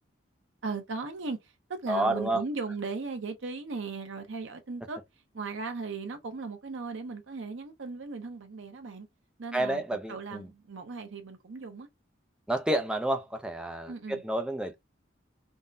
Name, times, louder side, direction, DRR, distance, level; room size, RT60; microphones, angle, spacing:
voice 1, 0.6-5.0 5.3-9.1 9.4-9.8 10.1-11.9 13.9-14.2, right 4 dB, 80° right, 0.6 m, -37 dB
voice 2, 1.9-2.4 9.5-10.5 12.5-14.8, right 1 dB, 5° right, 0.3 m, -29 dB
3.5 x 2.0 x 2.5 m
head